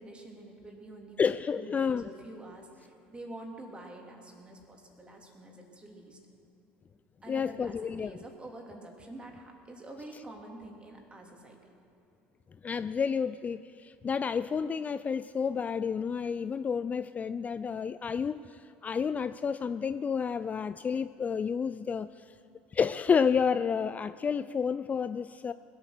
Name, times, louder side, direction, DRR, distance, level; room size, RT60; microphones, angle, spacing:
voice 1, 0.0-6.2 7.2-11.7, right 2 dB, 20° right, 1 dB, 3.0 m, -47 dB
voice 2, 1.2-2.1 7.3-8.2 12.6-22.2 22.7-25.5, left 6 dB, 25° left, 13 dB, 0.3 m, -30 dB
20.0 x 8.7 x 6.6 m, 2.6 s
hypercardioid pair, 75°, 6 cm